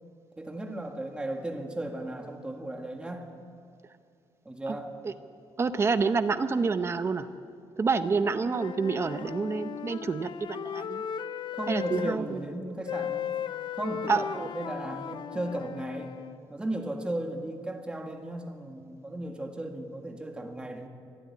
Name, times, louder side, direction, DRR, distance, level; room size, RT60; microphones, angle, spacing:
voice 1, 0.4-3.3 4.5-5.0 11.5-13.3 13.7-16.2 16.5-20.9, right 1 dB, 10° right, 3 dB, 1.8 m, -36 dB
voice 2, 5.6-7.3 7.8-11.0 11.7-12.4 14.1-14.5, right 4 dB, 30° right, 10 dB, 0.8 m, -28 dB
Wind instrument woodwind instrument, 8.2-12.2 12.9-16.4, left 9 dB, 55° left, 0.6 m, -36 dB
24.5 x 14.0 x 9.7 m, 2.3 s
wide cardioid pair, 180°, 9 cm